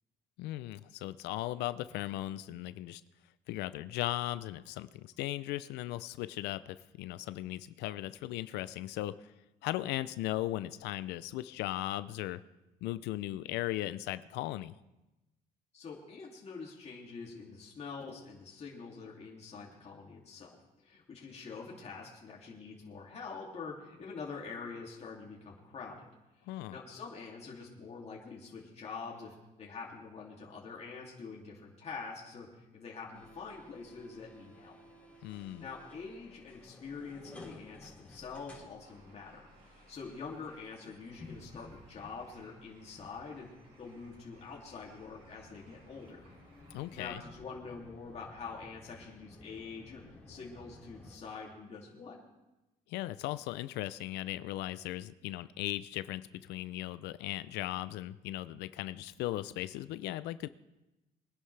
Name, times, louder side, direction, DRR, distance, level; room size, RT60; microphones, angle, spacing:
voice 1, 0.4-3.0 3.5-9.3 9.6-12.4 12.8-14.8 26.5-26.8 35.2-35.7 46.7-47.2 52.9-60.5, left 15 dB, 85° left, 15 dB, 0.5 m, -37 dB
voice 2, 15.7-26.1 26.7-34.7 35.6-43.5 43.8-46.2 46.9-52.2, left 4 dB, 40° left, -3 dB, 2.6 m, -45 dB
sound 1, 33.1-51.2, left 2 dB, 10° left, 4.4 m, -55 dB
Bird, 38.8-47.1, right 2 dB, 75° right, 5.9 m, -63 dB
22.5 x 11.0 x 3.3 m, 1.0 s
cardioid pair, 110°, 17 cm